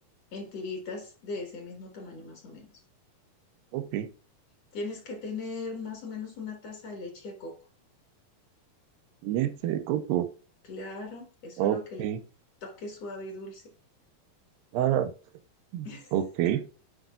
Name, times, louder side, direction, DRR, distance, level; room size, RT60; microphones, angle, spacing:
voice 1, 0.3-2.7 4.7-7.6 10.7-12.0 12.6-13.6 15.8-16.1 16.4-16.7, left 3 dB, 55° left, 2 dB, 2.2 m, -39 dB
voice 2, 3.7-4.1 9.2-10.3 11.6-12.2 14.7-15.1 15.7-16.6, right 11 dB, 90° right, 9 dB, 2.5 m, -28 dB
10.0 x 5.0 x 2.3 m, 0.35 s
omnidirectional pair, 4.0 m